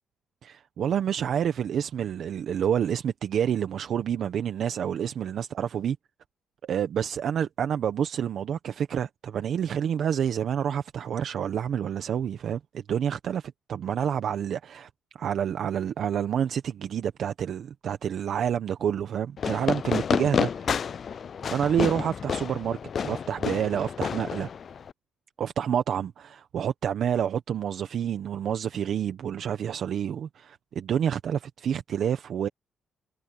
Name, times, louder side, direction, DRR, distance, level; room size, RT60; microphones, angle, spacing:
voice 1, 0.4-6.0 6.6-14.9 15.2-20.8 21.5-24.5 25.4-32.5, right 9 dB, 65° right, 1.3 m, -28 dB
Fireworks, 19.4-24.9, left 7 dB, 50° left, 0.4 m, -30 dB
cardioid pair, 90°, 0 cm